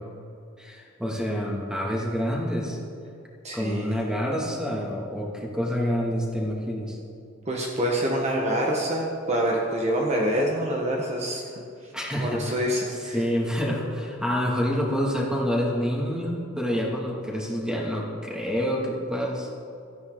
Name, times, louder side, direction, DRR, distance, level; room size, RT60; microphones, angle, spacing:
voice 1, 0.6-2.8 3.5-7.0 11.9-12.6 12.9-19.5, equal, 5° right, -3 dB, 2.5 m, -27 dB
voice 2, 3.4-4.0 7.5-11.6 12.2-13.2, equal, 35° right, -2 dB, 1.6 m, -26 dB
18.0 x 14.5 x 4.0 m, 2.6 s
head